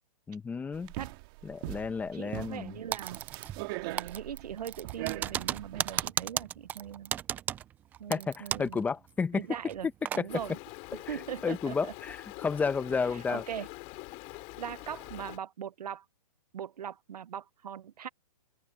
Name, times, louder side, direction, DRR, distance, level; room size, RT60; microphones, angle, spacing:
voice 1, 0.3-0.9 1.4-2.8 8.1-9.5 10.2-10.3 10.9-13.4, left 5 dB, 10° left, 0.9 m, -32 dB
sound 1, 0.7-6.1, right 22 dB, 35° right, 2.0 m, -41 dB
voice 2, 2.1-3.2 3.8-7.1 8.0-8.8 9.3-9.9 10.1-10.6 11.1-11.9 13.3-13.7 14.6-16.0 16.5-18.1, right 9 dB, 75° right, 0.9 m, -40 dB
Typing, 2.9-3.7 4.0-8.8 9.1-9.2 9.7-10.2, right 10 dB, 10° right, 0.3 m, -34 dB
Stream, 10.3-15.4, left 26 dB, 30° left, 3.2 m, -45 dB
hypercardioid pair, 150°, 20 cm